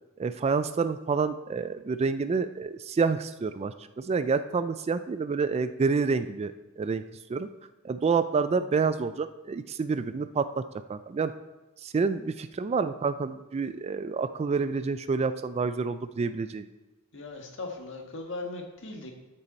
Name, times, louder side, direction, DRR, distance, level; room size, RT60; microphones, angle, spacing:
voice 1, 0.2-7.0 7.3-7.5 7.8-10.6 10.9-11.3 11.8-16.7, right 5 dB, 30° right, 12 dB, 0.3 m, -28 dB
voice 2, 17.1-19.1, left 3 dB, 60° left, 2 dB, 1.5 m, -38 dB
13.0 x 5.6 x 4.1 m, 1.1 s
head